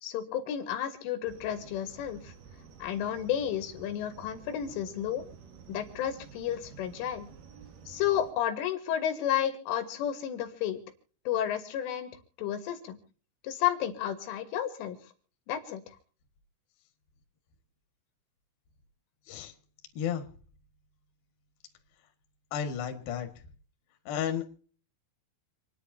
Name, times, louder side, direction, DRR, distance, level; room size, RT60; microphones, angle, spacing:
voice 1, 0.0-2.3 2.8-5.2 5.7-7.3 7.9-10.8 11.3-12.1 12.4-13.0 13.4-15.0 15.5-15.8, left 10 dB, 75° left, 7 dB, 3.8 m, -31 dB
sound 1, 1.3-8.3, right 6 dB, 60° right, 2.6 m, -51 dB
voice 2, 22.5-23.3 24.1-24.6, left 8 dB, 60° left, 5 dB, 3.1 m, -32 dB
28.5 x 10.5 x 2.8 m, 0.43 s
omnidirectional pair, 5.8 m